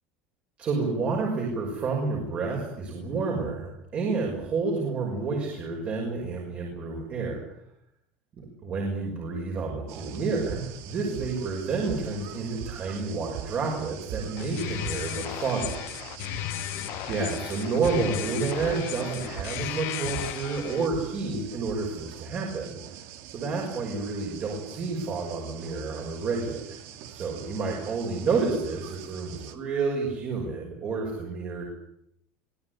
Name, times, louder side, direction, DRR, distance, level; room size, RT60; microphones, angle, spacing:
voice 1, 0.6-7.4 8.4-15.8 17.1-22.8 23.3-26.7 27.1-31.6, right 4 dB, 30° right, 0 dB, 6.0 m, -30 dB
sound 1, 9.9-29.6, right 10 dB, 60° right, 2.8 m, -44 dB
sound 2, 10.5-22.5, right 9 dB, 75° right, 4.2 m, -42 dB
sound 3, 14.4-20.9, left 16 dB, 55° left, 1.1 m, -35 dB
24.5 x 18.0 x 9.7 m, 0.76 s
cardioid pair, 165°, 5 cm